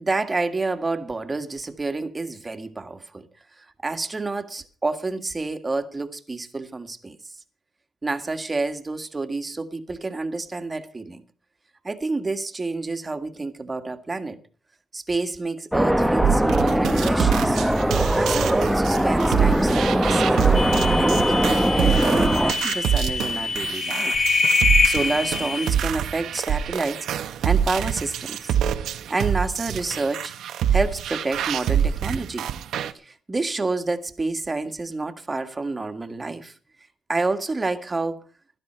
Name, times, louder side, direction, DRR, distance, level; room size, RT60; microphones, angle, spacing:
voice 1, 0.0-3.3 3.6-7.2 8.0-11.2 11.8-14.4 14.9-17.6 18.1-20.5 20.9-24.3 24.8-28.6 29.1-30.3 30.7-32.5 33.0-36.5 37.1-38.2, right 3 dB, 25° right, 1.7 m, -28 dB
sound 1, 15.7-22.5, equal, 5° right, 0.9 m, -21 dB
sound 2, 16.2-32.9, right 8 dB, 75° right, 1.0 m, -25 dB
sound 3, 20.5-25.7, left 4 dB, 35° left, 1.4 m, -24 dB
17.0 x 12.5 x 4.5 m
cardioid pair, 90°, 0 cm